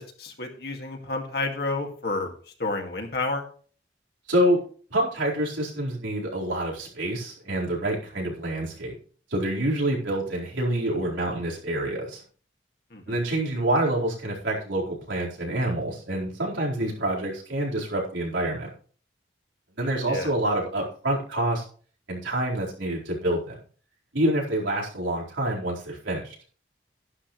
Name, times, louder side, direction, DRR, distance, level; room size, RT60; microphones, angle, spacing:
voice 1, 0.0-2.3 2.6-3.4 12.9-13.2 20.0-20.3, left 2 dB, 55° left, 2 dB, 2.1 m, -30 dB
voice 2, 4.3-4.6 4.9-9.0 9.3-12.2 13.1-18.7 19.8-21.6 22.1-23.6 24.1-26.4, right 1 dB, 90° right, -3 dB, 4.4 m, -27 dB
12.0 x 11.5 x 3.2 m, 0.42 s
head